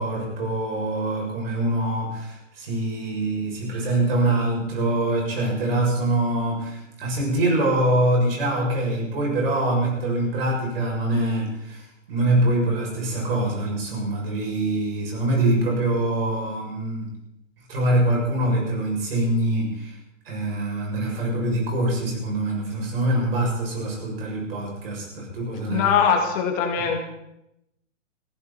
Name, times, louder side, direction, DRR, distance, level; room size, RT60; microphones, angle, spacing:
voice 1, 0.0-17.1 17.7-20.0 20.3-26.0, right 1 dB, 45° right, -1 dB, 7.2 m, -24 dB
voice 2, 25.7-27.0, left 7 dB, 20° left, 3 dB, 2.0 m, -21 dB
22.0 x 15.0 x 4.4 m, 0.84 s
hypercardioid pair, 160°, 39 cm